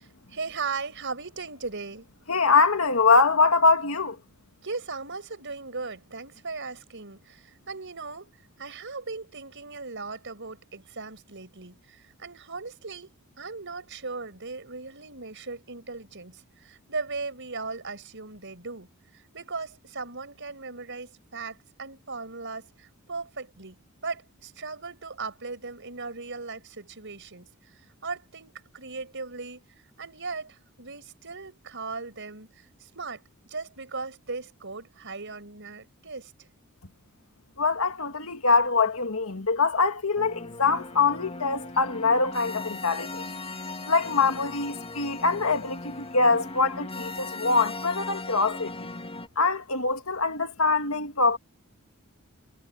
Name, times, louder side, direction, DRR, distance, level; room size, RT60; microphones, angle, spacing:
voice 1, 0.0-2.1 4.6-8.3 8.6-23.8 24.0-27.5 28.0-29.6 30.0-36.3, right 4 dB, 55° right, 6.0 m, -38 dB
voice 2, 2.3-4.2 37.6-43.2 43.9-48.9 49.4-51.4, left 4 dB, 70° left, 2.1 m, -23 dB
sound 1, 40.2-49.3, left 2 dB, 30° left, 2.6 m, -38 dB
head